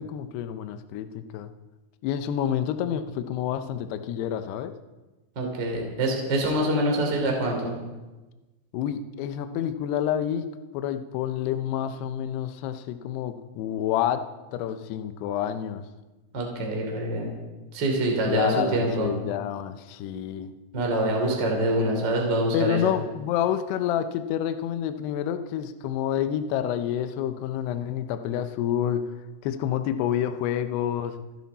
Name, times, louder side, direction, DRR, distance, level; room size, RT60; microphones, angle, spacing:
voice 1, 0.0-1.5 2.0-4.7 8.7-10.5 10.7-14.2 14.5-15.9 18.2-20.5 22.5-29.0 29.4-31.1, left 10 dB, 90° left, 9 dB, 2.3 m, -28 dB
voice 2, 5.3-7.7 16.3-17.3 17.7-19.1 20.7-22.8, right 1 dB, 25° right, 0 dB, 2.9 m, -25 dB
29.0 x 10.5 x 4.2 m, 1.1 s
omnidirectional pair, 5.9 m